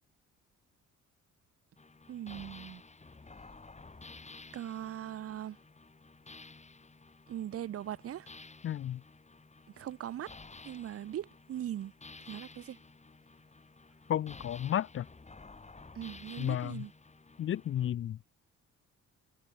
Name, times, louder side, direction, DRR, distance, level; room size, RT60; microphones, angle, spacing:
sound 1, 1.8-17.9, left 3 dB, 20° left, 4.2 m, -53 dB
voice 1, 2.1-2.8 4.5-5.6 7.3-8.3 9.8-10.3 10.6-11.9 12.3-12.8 16.0-16.9, right 11 dB, 50° right, 0.7 m, -40 dB
voice 2, 8.6-9.0 14.1-15.1 16.4-16.8 17.4-18.2, left 11 dB, 45° left, 0.5 m, -32 dB
cardioid pair, 90°, 30 cm